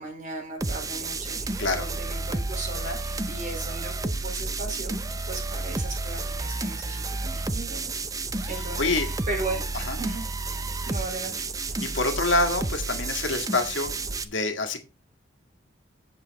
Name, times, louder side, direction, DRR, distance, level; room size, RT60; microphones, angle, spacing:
voice 1, 0.0-7.9 8.5-9.6 10.0-10.3 10.9-11.5, right 2 dB, 45° right, -1 dB, 4.3 m, -36 dB
sound 1, 0.6-14.2, right 3 dB, 20° right, 0.6 m, -31 dB
voice 2, 8.5-9.1 9.7-10.0 11.8-14.0 14.2-14.8, left 2 dB, 75° left, 6 dB, 1.7 m, -26 dB
8.2 x 7.7 x 4.0 m, 0.30 s
head